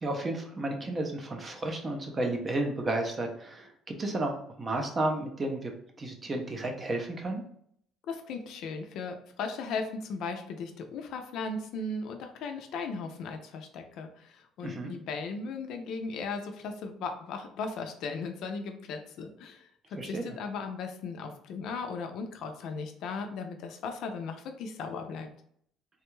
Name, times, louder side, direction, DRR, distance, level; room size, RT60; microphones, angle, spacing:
voice 1, 0.0-3.7 4.0-5.7 6.0-7.4 14.6-14.9 20.0-20.4, right 2 dB, 20° right, 3 dB, 0.5 m, -32 dB
voice 2, 8.1-25.3, left 4 dB, 55° left, 5 dB, 0.4 m, -37 dB
3.4 x 2.2 x 3.0 m, 0.67 s
cardioid pair, 170°, 0 cm